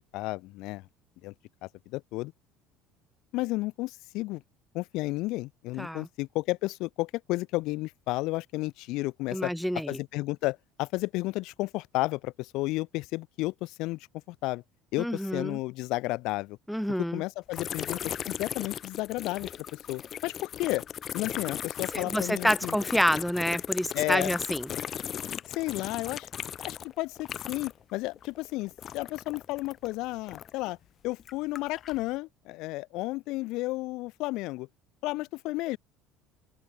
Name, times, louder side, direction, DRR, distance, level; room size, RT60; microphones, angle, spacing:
voice 1, 0.1-0.8 1.2-1.3 1.6-2.3 3.3-4.4 4.7-9.5 9.9-14.0 14.3-14.6 14.9-16.6 17.0-19.5 19.9-20.8 21.1-22.7 23.9-24.3 25.5-26.3 26.6-30.8 31.0-34.7 35.0-35.8, left 20 dB, 55° left, 1.1 m, -32 dB
voice 2, 9.3-10.0 15.0-15.6 16.7-17.2 21.9-24.7, equal, ahead, 0.5 m, -28 dB
sound 1, 17.5-27.9 28.2-30.7 31.2-32.0, left 9 dB, 30° left, 1.4 m, -37 dB
cardioid pair, 175°, 0 cm